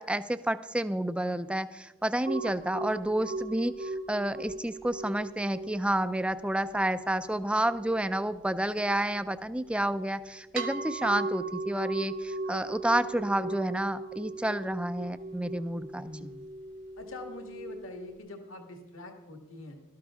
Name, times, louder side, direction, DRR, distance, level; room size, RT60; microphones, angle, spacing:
voice 1, 0.0-16.3, right 1 dB, 5° right, 12 dB, 0.4 m, -30 dB
sound 1, 2.3-18.2, right 3 dB, 55° right, 1.1 m, -39 dB
voice 2, 15.9-16.4 17.0-19.8, left 2 dB, 70° left, 4 dB, 1.8 m, -44 dB
18.0 x 13.0 x 3.7 m, 0.99 s
head